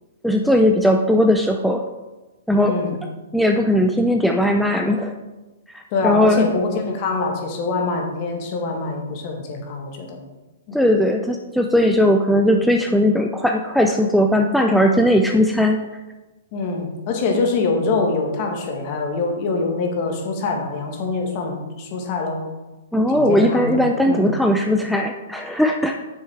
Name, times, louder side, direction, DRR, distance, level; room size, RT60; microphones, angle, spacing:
voice 1, 0.2-1.8 2.5-2.8 3.3-5.1 5.7-6.5 10.7-15.8 22.9-26.0, equal, ahead, 2 dB, 0.4 m, -18 dB
voice 2, 2.5-2.9 5.9-10.2 10.7-10.8 16.5-22.4 22.9-24.3, left 3 dB, 40° left, 2 dB, 1.6 m, -24 dB
8.0 x 6.3 x 3.5 m, 1.1 s
hypercardioid pair, 135°, 0 cm